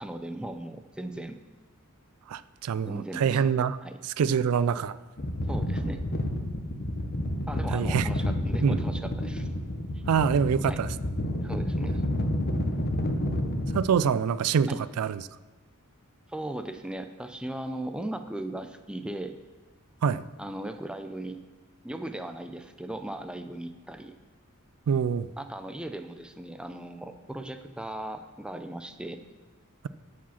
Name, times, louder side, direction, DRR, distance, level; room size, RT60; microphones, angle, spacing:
voice 1, 0.0-1.4 2.9-3.4 3.8-4.0 5.5-6.0 7.5-9.5 9.9-10.0 10.7-10.8 11.4-12.0 14.7-14.8 16.3-19.4 20.4-21.4 21.8-24.1 25.4-29.2, right 1 dB, 5° right, 8 dB, 0.4 m, -37 dB
voice 2, 2.3-3.8 4.0-5.0 7.7-8.1 8.6-8.8 10.1-10.9 13.7-15.2 20.0-20.2 24.9-25.3, right 7 dB, 85° right, 17 dB, 0.4 m, -25 dB
sound 1, 5.2-13.8, left 1 dB, 45° left, 0.9 m, -29 dB
13.0 x 5.0 x 5.7 m, 1.3 s
head